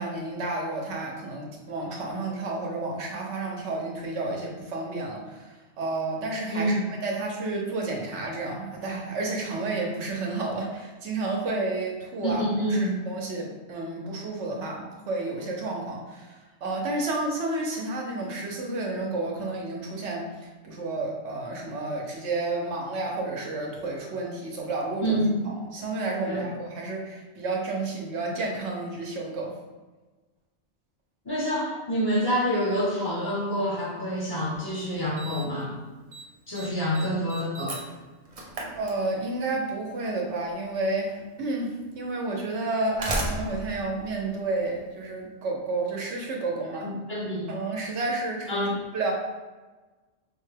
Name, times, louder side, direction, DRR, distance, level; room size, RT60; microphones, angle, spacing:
voice 1, 0.0-20.3 20.6-29.5 38.8-46.9 47.5-48.7 48.9-49.1, right 2 dB, 75° right, 0 dB, 1.0 m, -31 dB
voice 2, 6.5-6.8 12.4-13.0 25.0-25.5 26.2-26.5 31.2-35.7 36.5-37.8 46.8-47.5 48.5-48.7, equal, 25° left, -5 dB, 0.6 m, -27 dB
Slam, 34.4-34.5 35.2-35.6 35.9-36.3 36.6-39.5 40.6-40.7 41.6-41.7 42.6-45.0, right 2 dB, 45° right, 0.4 m, -35 dB
4.9 x 2.2 x 3.2 m, 1.2 s
omnidirectional pair, 1.2 m